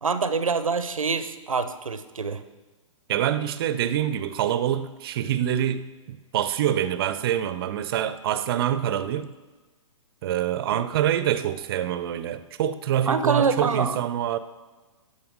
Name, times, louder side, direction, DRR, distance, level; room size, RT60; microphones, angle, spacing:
voice 1, 0.0-2.4 10.7-10.8 13.1-14.0, right 5 dB, 85° right, 12 dB, 0.6 m, -25 dB
voice 2, 3.1-9.3 10.2-14.4, right 10 dB, 45° right, 13 dB, 0.6 m, -26 dB
12.5 x 5.6 x 3.9 m, 1.2 s
figure-of-eight pair, 125°, 17 cm